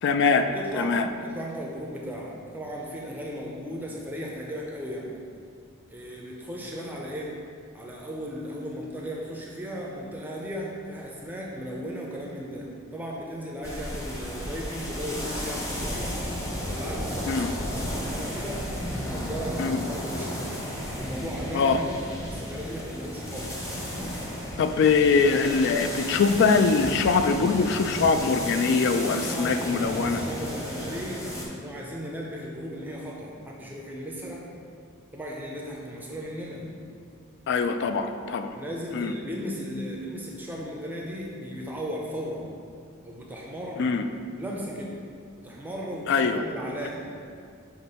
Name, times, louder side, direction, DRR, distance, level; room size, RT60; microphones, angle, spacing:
voice 1, 0.0-0.5 0.8-1.1 17.3-17.5 19.6-19.8 21.5-21.8 24.6-30.2 37.5-38.5 38.9-39.1 43.8-44.0 46.1-46.4, left 4 dB, 55° left, 8 dB, 0.3 m, -23 dB
voice 2, 0.5-5.1 5.9-7.4 7.7-16.2 16.7-18.6 18.9-20.4 21.0-22.0 22.3-23.7 29.1-34.5 35.1-36.7 38.5-42.4 43.0-43.9 44.4-45.0 45.4-47.2, equal, 10° right, -2 dB, 0.5 m, -36 dB
sound 1, 13.6-31.5, equal, 15° left, 0.8 m, -33 dB
6.0 x 3.0 x 5.4 m, 2.3 s
head